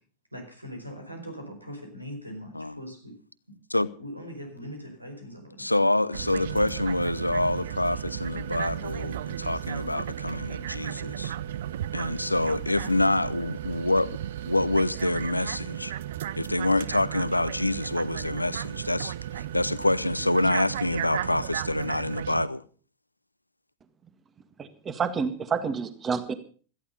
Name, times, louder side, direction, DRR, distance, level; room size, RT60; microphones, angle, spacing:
voice 1, 0.3-3.2 3.5-3.6 4.0-5.7, equal, 90° right, 4.9 m, -41 dB
voice 2, 5.6-11.3 11.9-14.1 14.5-15.9 16.4-22.6, left 2 dB, 85° left, 0.8 m, -26 dB
sound 1, 6.1-22.5, right 11 dB, 60° right, 0.7 m, -35 dB
voice 3, 24.6-26.3, right 5 dB, 20° right, 1.8 m, -29 dB
17.5 x 14.0 x 5.4 m
figure-of-eight pair, 90°, 0 cm